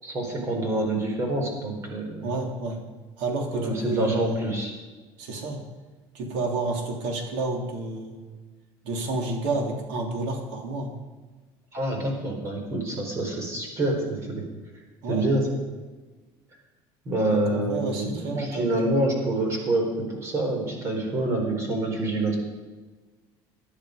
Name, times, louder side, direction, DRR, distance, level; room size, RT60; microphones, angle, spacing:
voice 1, 0.0-2.3 3.5-4.7 11.7-14.4 15.1-15.6 17.0-22.4, right 2 dB, 30° right, 2 dB, 4.3 m, -27 dB
voice 2, 2.2-2.8 3.2-4.5 5.2-5.6 6.1-8.2 8.8-10.9 15.0-15.3 17.3-18.7, right 2 dB, 80° right, 2 dB, 3.5 m, -30 dB
19.0 x 11.5 x 5.2 m, 1.3 s
cardioid pair, 165°, 9 cm